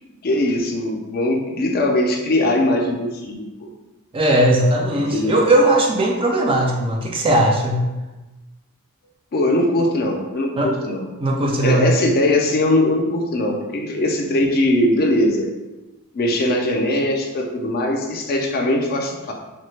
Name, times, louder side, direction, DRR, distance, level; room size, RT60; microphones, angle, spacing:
voice 1, 0.2-3.7 5.1-5.4 9.3-11.1 11.6-15.5 16.1-19.3, left 1 dB, 45° left, 2 dB, 0.4 m, -20 dB
voice 2, 4.1-7.9 10.6-10.7 11.2-11.9, right 1 dB, 25° right, 0 dB, 0.3 m, -18 dB
3.1 x 2.1 x 3.1 m, 1.1 s
head